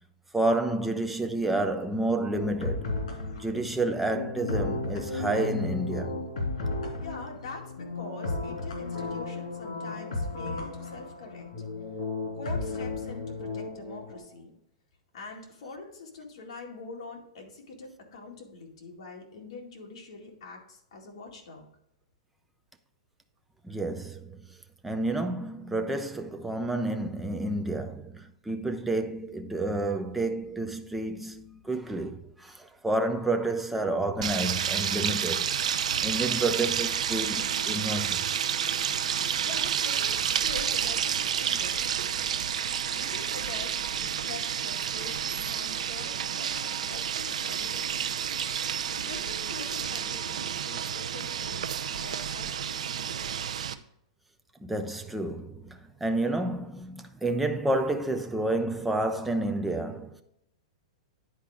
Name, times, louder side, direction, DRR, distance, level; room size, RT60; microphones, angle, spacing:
voice 1, 0.3-2.9 3.4-6.3 23.6-24.5 24.8-35.5 36.0-38.3 54.6-60.2, right 2 dB, 5° right, 0.4 m, -30 dB
sound 1, 2.3-14.2, left 3 dB, 75° left, 2.8 m, -34 dB
voice 2, 7.0-11.5 12.3-14.5 15.1-21.7 39.4-41.8 42.9-51.6 51.9-53.5, left 3 dB, 50° left, 2.2 m, -44 dB
sound 2, 34.2-53.7, right 8 dB, 80° right, 0.6 m, -30 dB
9.9 x 4.6 x 3.7 m
supercardioid pair, 175°, 4 cm